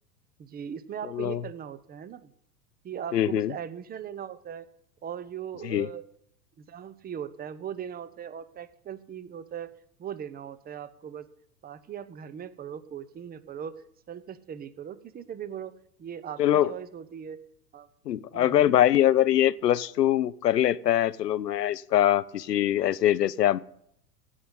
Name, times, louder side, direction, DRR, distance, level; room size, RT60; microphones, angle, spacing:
voice 1, 0.4-2.3 2.8-4.7 5.0-6.1 6.6-9.7 10.0-11.3 11.6-13.7 14.1-17.4 17.7-17.9 18.3-18.8, right 8 dB, 20° right, 16 dB, 0.8 m, -39 dB
voice 2, 1.0-1.4 3.1-3.5 5.6-5.9 16.4-16.7 18.1-23.6, left 12 dB, 90° left, 19 dB, 0.7 m, -23 dB
16.0 x 5.6 x 8.0 m, 0.70 s
hypercardioid pair, 100°, 47 cm